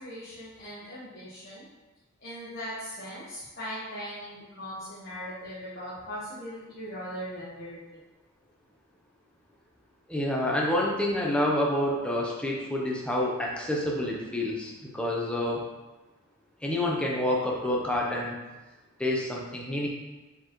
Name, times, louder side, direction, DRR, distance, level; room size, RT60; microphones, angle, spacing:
voice 1, 0.0-1.7 2.2-8.0, equal, 45° left, -11 dB, 1.3 m, -39 dB
voice 2, 10.1-15.6 16.6-18.4 19.0-19.9, left 1 dB, 5° left, -3 dB, 0.8 m, -28 dB
6.9 x 4.4 x 3.1 m, 1.2 s
head